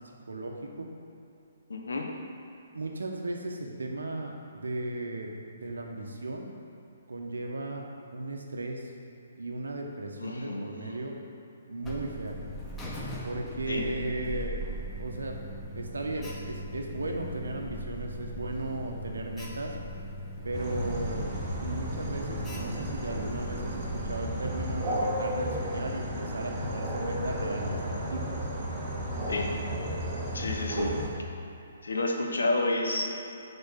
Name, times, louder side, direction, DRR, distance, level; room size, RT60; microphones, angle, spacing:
voice 1, 0.3-0.9 2.7-6.5 7.1-7.8 8.1-8.9 9.4-11.2 11.7-12.4 13.2-14.6 15.0-15.4 15.7-19.7 20.4-21.3 21.6-28.4, right 2 dB, 85° right, 2 dB, 1.0 m, -36 dB
voice 2, 1.7-2.1 10.2-11.0 13.7-13.8 29.3-29.5 30.3-30.9 31.8-33.2, left 2 dB, 85° left, 1 dB, 1.1 m, -30 dB
Alarm, 11.8-24.2, equal, 15° left, 1.0 m, -39 dB
sound 1, 20.5-31.1, equal, 25° right, 1.7 m, -33 dB
6.9 x 4.3 x 5.8 m, 2.7 s
hypercardioid pair, 140°, 0 cm